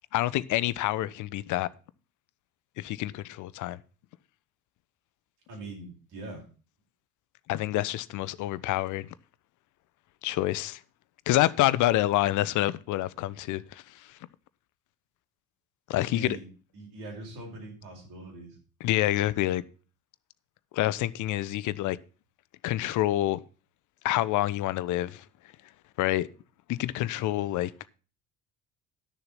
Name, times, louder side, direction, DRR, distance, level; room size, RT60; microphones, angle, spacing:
voice 1, 0.1-1.7 2.8-3.8 7.5-9.1 10.2-10.8 11.3-13.8 15.9-16.4 18.8-19.6 20.7-22.0 22.6-23.4 24.0-25.2 26.0-26.3 26.7-27.7, left 15 dB, 45° left, 0.7 m, -27 dB
voice 2, 5.5-6.4 16.0-16.5 16.7-18.6, right 2 dB, 60° right, 5.0 m, -42 dB
11.5 x 6.7 x 5.7 m
figure-of-eight pair, 55°, 43 cm